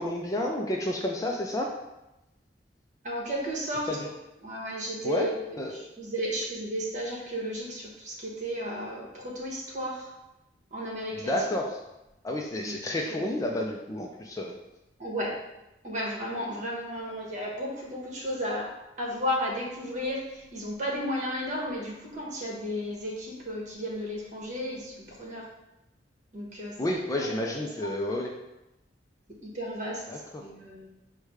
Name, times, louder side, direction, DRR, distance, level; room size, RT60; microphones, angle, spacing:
voice 1, 0.0-1.7 3.9-4.1 5.0-5.3 5.6-5.8 11.3-11.8 12.2-14.5 26.8-28.3 30.1-30.4, left 1 dB, 20° left, 0 dB, 0.4 m, -30 dB
voice 2, 3.0-3.9 4.4-10.1 10.7-11.3 12.6-13.3 15.0-15.3 15.8-18.7 19.0-25.4 26.3-26.7 27.1-27.4 27.8-27.9 29.4-30.9, equal, 40° right, -3 dB, 1.2 m, -34 dB
4.8 x 2.2 x 4.8 m, 0.93 s
head